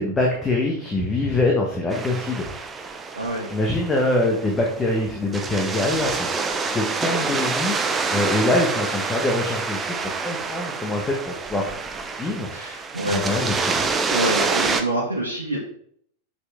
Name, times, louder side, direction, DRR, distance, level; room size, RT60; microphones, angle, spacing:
voice 1, 0.0-2.4 3.5-11.7 12.2-12.5 13.1-13.8, left 2 dB, 15° left, -1 dB, 1.3 m, -24 dB
sound 1, 1.9-14.8, right 4 dB, 15° right, 0.7 m, -27 dB
voice 2, 3.1-3.5 12.5-13.2 14.1-15.6, right 1 dB, 80° right, -5 dB, 1.5 m, -26 dB
6.5 x 5.4 x 3.6 m, 0.64 s
figure-of-eight pair, 90°, 0 cm